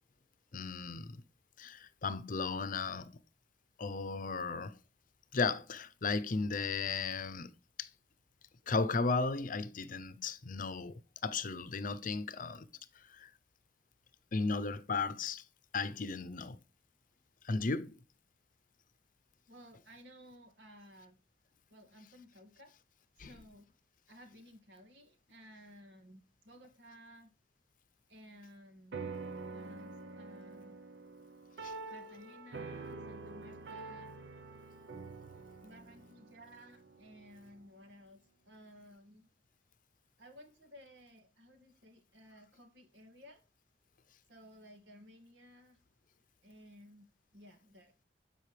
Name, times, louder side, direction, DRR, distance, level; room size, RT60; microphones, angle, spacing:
voice 1, 0.5-1.2 1.6-3.1 3.8-4.8 5.3-7.5 7.8-7.9 8.7-12.7 13.0-13.3 14.3-15.4 15.7-16.6 17.4-18.0 23.2-23.3 31.6-31.7, left 4 dB, 50° left, 0.7 m, -35 dB
voice 2, 19.5-21.2 21.7-22.7 23.2-23.7 24.1-27.3 28.1-29.1 29.5-30.8 31.9-34.1 35.6-38.2 38.5-39.3 40.2-43.4 44.3-45.8 46.4-47.9, equal, 85° right, 2.3 m, -56 dB
sound 1, 28.9-37.6, right 4 dB, 70° right, 0.8 m, -47 dB
14.0 x 5.5 x 3.3 m
head